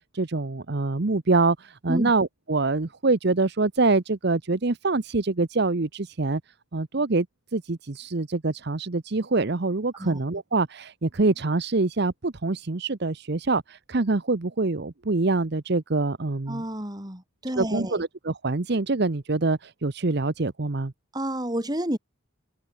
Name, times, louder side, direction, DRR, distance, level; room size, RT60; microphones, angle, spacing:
voice 1, 0.1-6.4 6.7-7.3 7.5-16.6 17.6-20.9, right 3 dB, 55° right, 0.9 m, -25 dB
voice 2, 16.5-18.0 21.1-22.0, right 1 dB, 20° right, 4.0 m, -30 dB
open air
head